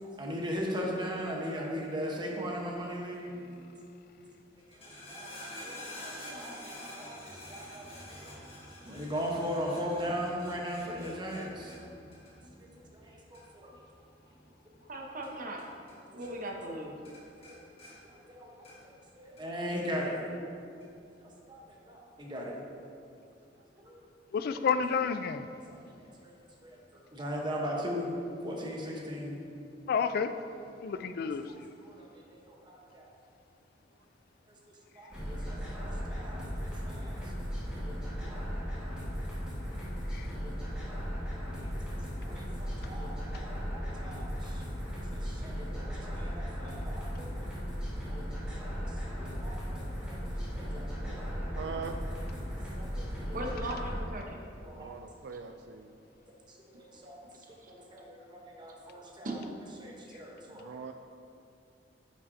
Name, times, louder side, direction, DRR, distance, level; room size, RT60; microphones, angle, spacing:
voice 1, 0.0-3.4 4.7-5.3 5.6-8.4 8.8-11.7 12.6-13.7 16.1-16.2 17.4-17.6 18.3-20.2 21.2-22.6 23.7-24.0 24.4-24.6 25.7-26.1 26.6-28.2 28.4-29.5 31.0-31.1 31.8-33.1 35.0-37.2 38.2-38.4 41.5-44.6 44.9-47.5 49.1-49.8 50.1-51.4 52.4-53.1 54.5-54.9 56.5-57.2 57.7-59.4 59.8-60.7, equal, 25° right, -2 dB, 1.0 m, -39 dB
sound 1, 4.6-16.0 16.2-16.8 17.0-19.0 19.4-20.1 20.8-20.9, left 1 dB, 35° left, 1.4 m, -48 dB
voice 2, 14.9-15.7 16.1-17.0 51.0-51.1 53.3-54.4 57.6-57.7 59.2-59.4, right 1 dB, 50° right, 1 dB, 0.9 m, -38 dB
voice 3, 24.3-25.5 29.9-30.3 30.8-31.6 40.1-40.3, left 6 dB, 55° left, 10 dB, 0.3 m, -30 dB
sound 2, 35.1-54.0, equal, 5° right, 1.7 m, -36 dB
voice 4, 51.5-52.0 54.8-55.9 60.5-60.9, right 6 dB, 65° right, 6 dB, 0.3 m, -41 dB
9.9 x 5.7 x 2.7 m, 2.5 s
head